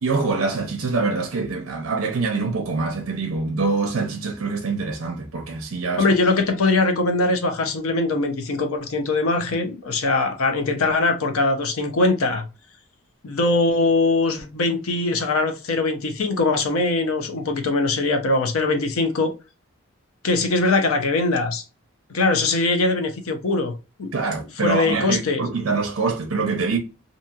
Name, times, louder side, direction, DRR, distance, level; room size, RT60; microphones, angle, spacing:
voice 1, 0.0-6.1 24.1-26.8, right 4 dB, 70° right, 0.5 m, -25 dB
voice 2, 6.0-12.4 13.2-19.3 20.2-21.6 22.1-23.7 24.0-24.1 24.6-25.5, left 3 dB, 90° left, 0.6 m, -21 dB
2.8 x 2.6 x 2.3 m
head